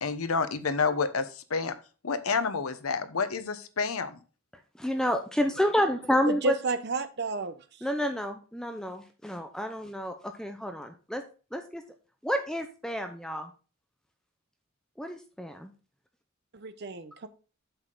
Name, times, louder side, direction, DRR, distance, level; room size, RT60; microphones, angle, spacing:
voice 1, 0.0-1.7 2.0-4.2, left 5 dB, 90° left, 12 dB, 0.9 m, -29 dB
voice 2, 4.8-6.5 7.8-11.2 11.5-11.8 12.2-13.5 15.0-15.7, equal, 5° left, 6 dB, 0.7 m, -29 dB
voice 3, 6.3-7.6 16.5-17.3, right 2 dB, 50° right, 11 dB, 0.8 m, -31 dB
8.0 x 6.5 x 3.9 m, 0.35 s
head